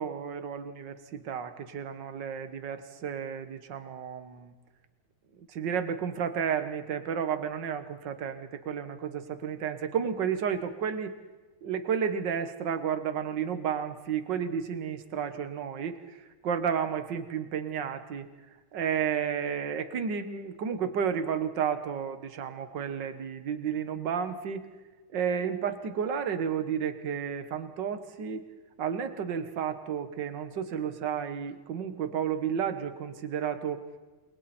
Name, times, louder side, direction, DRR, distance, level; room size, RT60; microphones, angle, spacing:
voice 1, 0.0-4.5 5.4-11.2 11.6-18.3 18.7-24.7 25.1-28.4 28.8-33.8, right 7 dB, 45° right, 9 dB, 1.6 m, -32 dB
29.5 x 22.5 x 4.4 m, 1.3 s
omnidirectional pair, 3.4 m